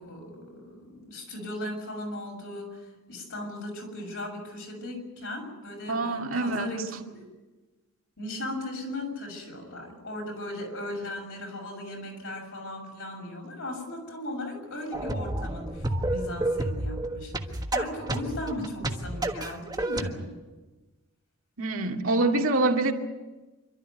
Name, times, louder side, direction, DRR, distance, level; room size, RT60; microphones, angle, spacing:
voice 1, 0.0-6.8 7.1-7.2 8.2-20.3, left 1 dB, 65° left, 6.9 m, -37 dB
voice 2, 5.9-6.8 21.6-22.9, right 2 dB, 70° right, 2.3 m, -25 dB
sound 1, 14.9-20.1, right 1 dB, 20° right, 1.4 m, -30 dB
27.0 x 13.0 x 9.5 m
head